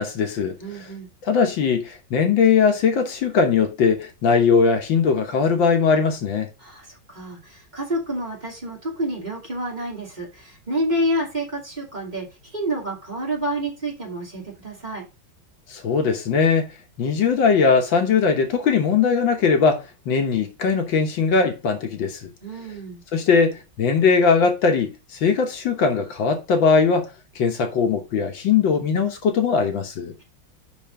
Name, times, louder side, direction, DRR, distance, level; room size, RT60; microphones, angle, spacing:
voice 1, 0.0-0.9 1.2-6.5 15.7-16.7 17.0-22.3 23.1-27.1 27.4-30.1, left 5 dB, 70° left, 1.8 m, -20 dB
voice 2, 0.6-1.1 6.6-12.3 12.5-15.0 22.4-23.0, right 1 dB, 20° right, 2.8 m, -28 dB
5.7 x 5.4 x 5.2 m
omnidirectional pair, 2.2 m